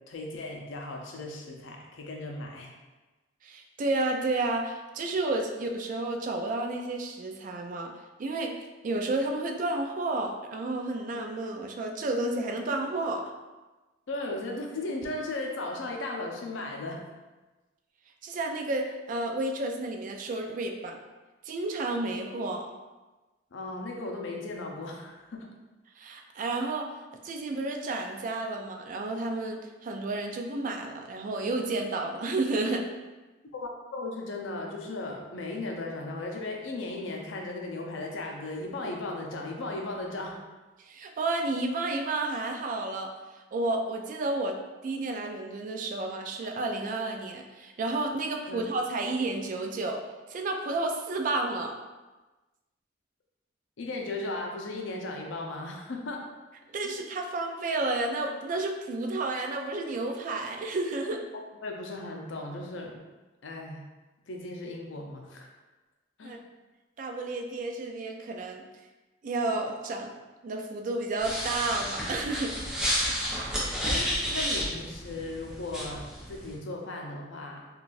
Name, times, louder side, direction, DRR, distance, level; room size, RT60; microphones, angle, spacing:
voice 1, 0.1-2.7 14.1-17.0 23.5-25.5 33.5-40.4 48.5-48.6 53.8-56.3 56.8-56.9 61.6-63.0 63.4-63.8 64.3-65.5 66.2-66.4 73.8-77.6, left 2 dB, 75° left, 1 dB, 0.5 m, -36 dB
voice 2, 3.4-7.9 8.2-8.5 8.8-13.3 18.2-21.0 21.4-22.7 26.0-26.9 27.2-32.8 40.8-43.1 43.5-50.0 50.3-51.7 56.7-61.2 66.2-66.4 67.0-68.6 69.2-70.1 70.4-72.5, right 2 dB, 45° right, 3 dB, 0.3 m, -31 dB
sound 1, 71.2-76.5, equal, 5° right, 0.6 m, -31 dB
3.8 x 2.3 x 2.4 m, 1.2 s
head